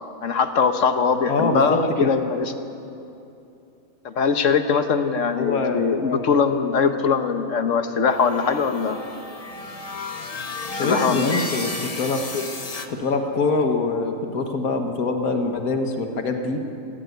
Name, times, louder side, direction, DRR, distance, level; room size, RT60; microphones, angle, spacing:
voice 1, 0.2-2.5 4.0-9.0 10.7-11.3, left 5 dB, 65° left, 8 dB, 1.4 m, -21 dB
voice 2, 1.3-2.1 5.3-6.3 10.7-12.5 12.9-16.6, left 3 dB, 90° left, 4 dB, 1.8 m, -24 dB
sound 1, 8.1-12.9, left 3 dB, 30° left, 1.0 m, -32 dB
18.0 x 15.5 x 9.4 m, 2.7 s
omnidirectional pair, 1.5 m